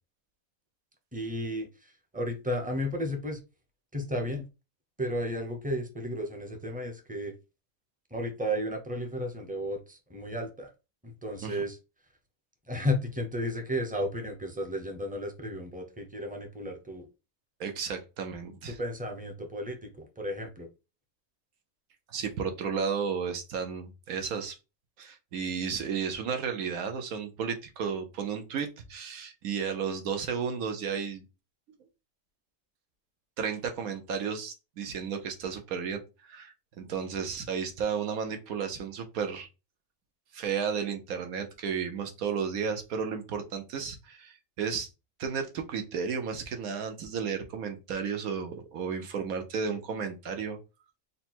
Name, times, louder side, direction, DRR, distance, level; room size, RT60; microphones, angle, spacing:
voice 1, 1.1-3.4 3.9-4.5 5.0-7.3 8.1-10.7 11.0-11.8 12.7-17.1 18.7-20.7, equal, 10° right, 3 dB, 0.6 m, -33 dB
voice 2, 17.6-18.8 22.1-24.6 25.0-31.2 33.4-39.5 40.3-44.9 45.2-50.6, right 6 dB, 85° right, 6 dB, 1.3 m, -33 dB
4.1 x 2.2 x 4.3 m, 0.28 s
omnidirectional pair, 1.4 m